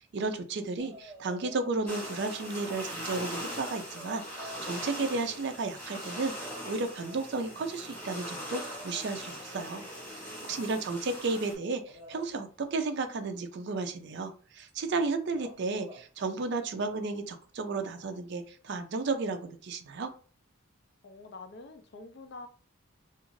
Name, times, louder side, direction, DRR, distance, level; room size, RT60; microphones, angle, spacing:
voice 1, 0.0-9.8 10.4-20.1, right 3 dB, 55° right, 7 dB, 0.4 m, -33 dB
sound 1, 0.8-1.7 2.0-5.6 6.1-11.0 11.8-12.3 14.2-14.3 14.6-15.0 15.3-16.0 17.4-17.5, equal, 15° right, 0.9 m, -52 dB
sound 2, 1.9-11.5, equal, 10° left, 1.1 m, -41 dB
voice 2, 10.0-10.9 21.0-22.5, left 3 dB, 50° left, 7 dB, 0.4 m, -48 dB
2.4 x 2.4 x 3.1 m, 0.40 s
head